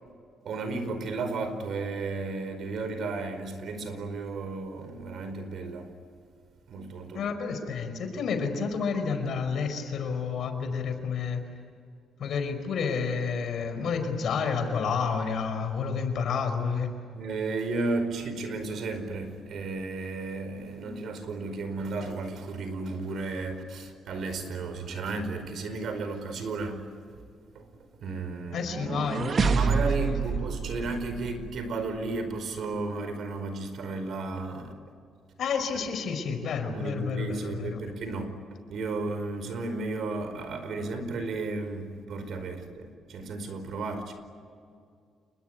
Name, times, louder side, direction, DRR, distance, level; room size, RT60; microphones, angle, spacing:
voice 1, 0.4-5.9 6.7-7.3 16.6-16.7 17.1-26.9 27.5-27.7 28.0-28.7 29.5-34.7 36.7-38.3 38.7-44.1, right 3 dB, 65° right, 5.0 m, -33 dB
voice 2, 7.1-11.4 12.2-16.9 28.5-30.4 35.4-37.8, left 5 dB, 65° left, 5.1 m, -30 dB
sound 1, 28.5-31.7, right 6 dB, 45° right, 1.2 m, -28 dB
28.5 x 21.5 x 9.7 m
cardioid pair, 90°, 0 cm